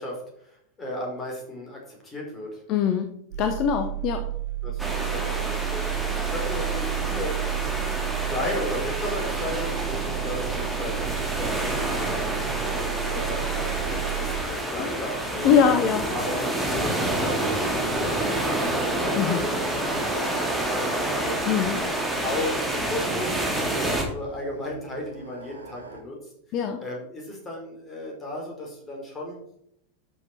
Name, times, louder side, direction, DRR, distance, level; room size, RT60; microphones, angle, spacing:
voice 1, 0.0-2.6 4.6-15.5 16.1-21.4 22.1-26.3 26.8-29.4, left 1 dB, 20° left, -1 dB, 4.6 m, -35 dB
voice 2, 2.7-4.3 14.8-14.9 15.4-16.1 19.2-19.5 21.4-21.9 26.5-26.8, left 7 dB, 40° left, 8 dB, 1.0 m, -23 dB
sound 1, 3.3-14.4, right 15 dB, 60° right, 1.2 m, -31 dB
sound 2, 4.8-24.0, right 1 dB, ahead, 2.8 m, -28 dB
sound 3, 15.2-26.0, right 3 dB, 80° right, 1.7 m, -43 dB
12.5 x 6.9 x 4.5 m, 0.73 s
figure-of-eight pair, 90°, 0 cm